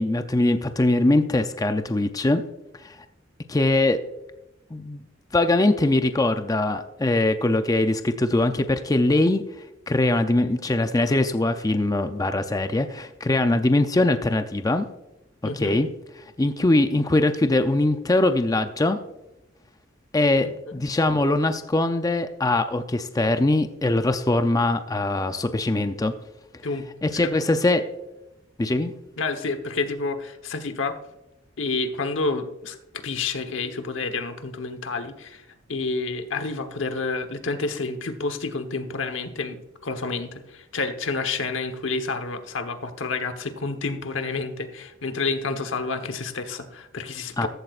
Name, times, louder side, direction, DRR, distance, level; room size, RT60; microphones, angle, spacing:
voice 1, 0.0-2.4 2.8-3.0 3.5-4.0 4.7-5.0 5.3-9.4 9.9-14.9 15.4-15.9 16.4-19.0 20.1-26.1 27.0-27.9 28.6-28.9 47.4-47.5, left 2 dB, 20° left, 8 dB, 0.5 m, -22 dB
voice 2, 15.4-15.8 20.7-20.8 26.6-26.9 29.2-31.0 31.6-47.5, left 3 dB, 70° left, 8 dB, 1.1 m, -29 dB
14.5 x 12.0 x 2.5 m, 0.93 s
head